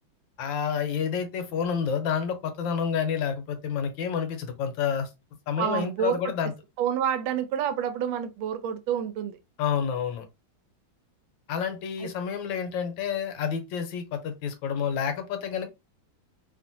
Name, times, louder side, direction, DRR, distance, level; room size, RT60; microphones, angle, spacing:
voice 1, 0.4-5.1 5.5-6.5 9.6-10.2 11.5-15.7, left 7 dB, 75° left, 1.3 m, -29 dB
voice 2, 5.6-6.3 6.8-9.4 12.0-12.1, right 9 dB, 85° right, 1.3 m, -28 dB
3.1 x 2.5 x 2.6 m
omnidirectional pair, 2.1 m